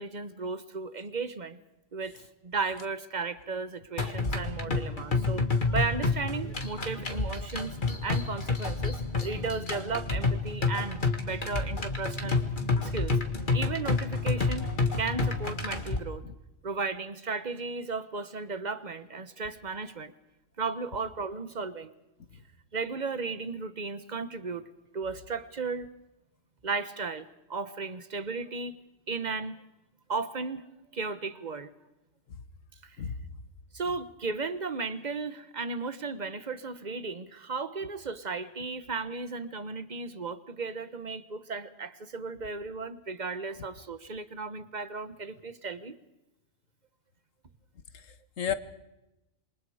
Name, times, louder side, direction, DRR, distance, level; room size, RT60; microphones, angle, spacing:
voice 1, 0.0-1.6 1.9-12.4 12.8-13.2 13.5-14.7 15.0-16.2 16.6-20.1 20.6-21.9 22.7-24.7 24.9-25.9 26.6-28.8 29.1-29.6 30.1-30.7 30.9-31.7 32.8-33.0 33.7-46.0, right 4 dB, 35° right, 12 dB, 1.3 m, -35 dB
sound 1, 4.0-16.0, left 3 dB, 40° left, 2.0 m, -29 dB
voice 2, 47.9-48.5, left 8 dB, 85° left, 12 dB, 1.7 m, -34 dB
27.0 x 24.0 x 5.0 m, 0.93 s
omnidirectional pair, 1.3 m